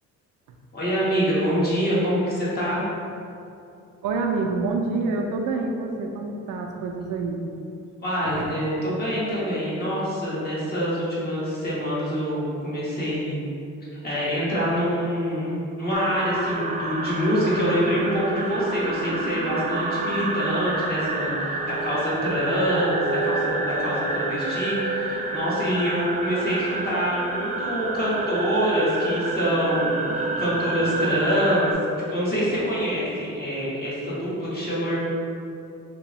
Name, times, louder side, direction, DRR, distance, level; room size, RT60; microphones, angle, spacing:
voice 1, 0.7-2.9 8.0-13.4 13.9-31.7 32.0-35.0, equal, 30° left, -8 dB, 1.4 m, -25 dB
voice 2, 4.0-7.5 8.2-8.5, right 3 dB, 85° right, 2 dB, 0.5 m, -27 dB
sound 1, 15.9-31.7, right 3 dB, 25° right, 0.4 m, -28 dB
3.5 x 2.9 x 3.0 m, 2.6 s
cardioid pair, 90°, 30 cm